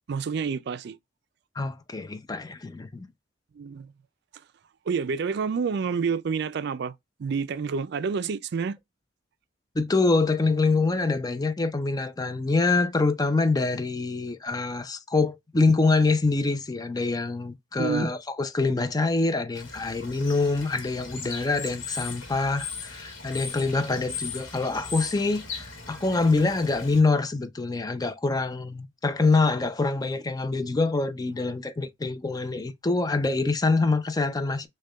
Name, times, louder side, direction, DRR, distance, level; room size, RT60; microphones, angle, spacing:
voice 1, 0.1-1.0 3.5-3.9 4.3-4.4 4.9-6.9 7.2-8.8 17.8-18.1, right 5 dB, 60° right, 0.4 m, -28 dB
voice 2, 1.6-3.1 9.8-34.7, left 3 dB, 20° left, 0.5 m, -25 dB
Bird / Water, 19.5-27.0, left 5 dB, 85° left, 1.2 m, -38 dB
6.2 x 2.2 x 2.2 m
head